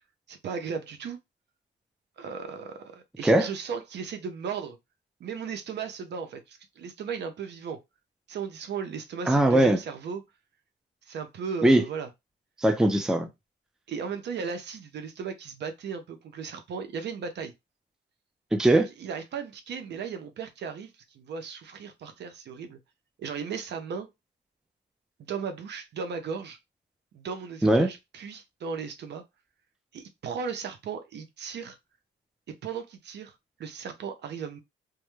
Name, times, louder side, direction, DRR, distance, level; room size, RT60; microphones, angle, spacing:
voice 1, 0.3-1.2 2.2-4.8 5.2-7.8 8.3-10.2 11.1-12.1 13.9-17.5 19.0-22.8 23.2-24.1 25.3-26.6 27.1-29.2 29.9-31.8 32.5-33.3 33.6-34.6, right 6 dB, 60° right, 0.6 m, -36 dB
voice 2, 9.3-9.8 11.6-11.8 12.6-13.3 18.5-18.9 27.6-27.9, right 1 dB, 5° right, 0.4 m, -20 dB
2.2 x 2.1 x 3.0 m
cardioid pair, 90°, 20 cm